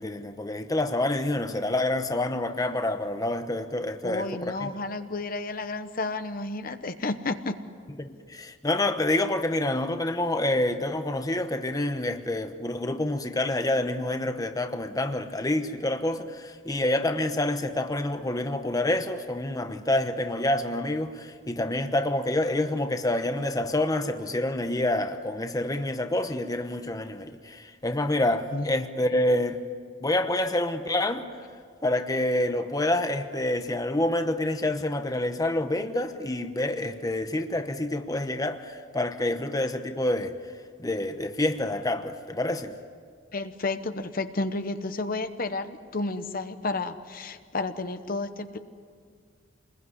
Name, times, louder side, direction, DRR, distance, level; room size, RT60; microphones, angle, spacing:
voice 1, 0.0-4.7 8.0-29.6 30.0-31.2 31.8-40.4 40.8-42.7, left 1 dB, 20° left, 7 dB, 1.0 m, -27 dB
voice 2, 4.0-7.6 28.5-28.7 43.3-48.6, left 3 dB, 45° left, 9 dB, 1.0 m, -31 dB
28.0 x 21.5 x 9.7 m, 2.1 s
head